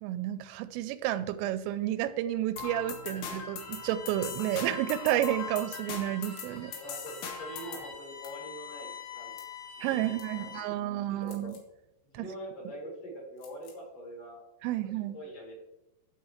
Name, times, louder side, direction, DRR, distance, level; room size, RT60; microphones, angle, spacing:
voice 1, 0.0-6.7 9.8-11.6 12.1-12.3 14.6-15.2, right 13 dB, 85° right, 13 dB, 3.2 m, -31 dB
sound 1, 2.6-7.9, left 6 dB, 85° left, 4.2 m, -40 dB
Bowed string instrument, 3.6-10.8, left 7 dB, 55° left, 3.0 m, -46 dB
sound 2, 6.4-6.5 8.2-8.4 9.4-9.6 10.2-10.3 11.2-11.7 13.4-13.8, left 7 dB, 70° left, 4.1 m, -55 dB
voice 2, 6.7-9.4 9.8-11.5 12.0-14.4 14.8-15.6, equal, 35° left, -6 dB, 5.0 m, -44 dB
14.0 x 8.2 x 3.2 m, 0.92 s
omnidirectional pair, 5.7 m